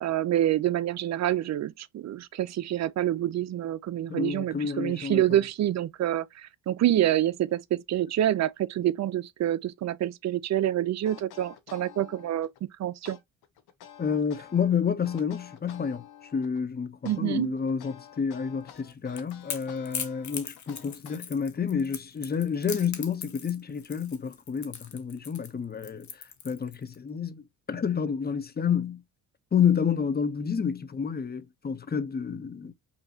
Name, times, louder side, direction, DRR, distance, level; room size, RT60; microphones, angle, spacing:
voice 1, 0.0-12.5 12.8-13.2 17.1-17.5, right 12 dB, 45° right, 0.5 m, -27 dB
voice 2, 4.1-5.2 14.0-16.0 16.3-26.1 26.4-29.0 29.5-32.7, left 7 dB, 25° left, 0.7 m, -29 dB
sound 1, 11.0-12.6 13.0-14.7 15.0-16.6 17.0-21.6, left 9 dB, 70° left, 1.1 m, -49 dB
Crackle / Crack, 18.8-26.9, left 7 dB, 45° left, 1.2 m, -39 dB
5.5 x 2.8 x 2.7 m
supercardioid pair, 75°, 40 cm